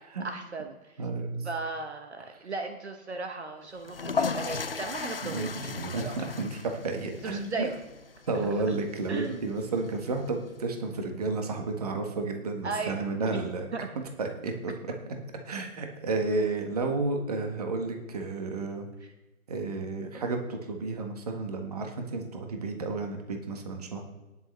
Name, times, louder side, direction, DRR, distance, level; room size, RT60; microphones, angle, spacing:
voice 1, 0.0-1.0 1.4-5.7 5.9-6.1 7.2-7.8 8.4-8.8 9.1-9.4 12.6-13.0 13.3-13.5 13.7-13.9 20.1-20.2, right 4 dB, 50° right, 5 dB, 1.2 m, -37 dB
voice 2, 1.0-1.5 5.2-7.7 8.3-13.7 14.2-14.9 15.5-18.9 19.5-24.0, right 3 dB, 25° right, 4 dB, 1.4 m, -32 dB
sound 1, 3.8-10.6, left 4 dB, 40° left, 0.6 m, -36 dB
19.5 x 6.7 x 3.3 m, 1.1 s
figure-of-eight pair, 160°, 43 cm